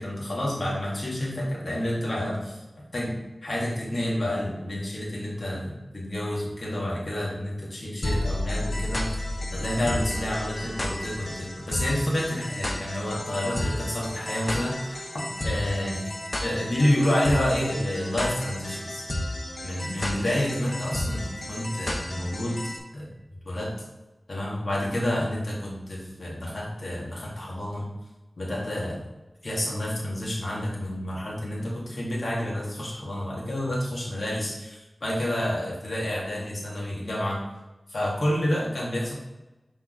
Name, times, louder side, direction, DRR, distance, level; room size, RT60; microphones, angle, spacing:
voice 1, 0.0-2.6 2.9-9.1 9.5-16.1 16.4-19.0 19.6-22.6 22.9-23.1 23.5-23.7 24.3-27.9 28.4-29.0 29.4-37.4 37.9-39.1, left 1 dB, 55° left, -4 dB, 2.2 m, -29 dB
sound 1, 8.0-22.8, left 1 dB, 35° left, 1.0 m, -32 dB
6.2 x 4.4 x 3.9 m, 1.1 s
wide cardioid pair, 65°, 0 cm